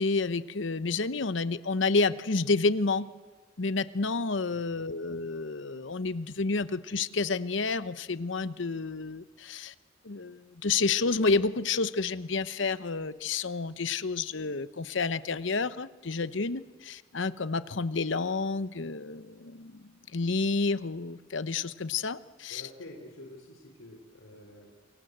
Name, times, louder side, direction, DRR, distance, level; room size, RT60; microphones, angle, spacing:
voice 1, 0.0-3.1 3.6-9.7 10.0-22.6, left 4 dB, 70° left, 14 dB, 0.9 m, -30 dB
voice 2, 4.5-4.8 22.5-24.7, left 1 dB, 90° left, 1 dB, 3.7 m, -48 dB
28.0 x 24.0 x 8.0 m, 1.3 s
head